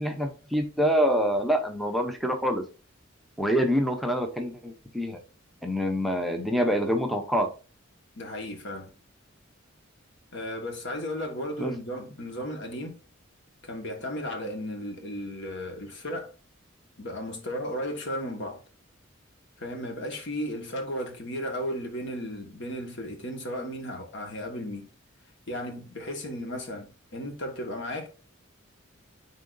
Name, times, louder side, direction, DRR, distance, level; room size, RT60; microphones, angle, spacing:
voice 1, 0.0-2.6 3.4-5.2 5.6-7.5 11.6-11.7, equal, ahead, 0.7 m, -26 dB
voice 2, 8.2-8.9 10.3-13.0 13.6-16.3 17.0-18.6 19.6-24.9 25.5-28.1, equal, 65° left, 1.5 m, -35 dB
10.0 x 3.8 x 2.6 m
head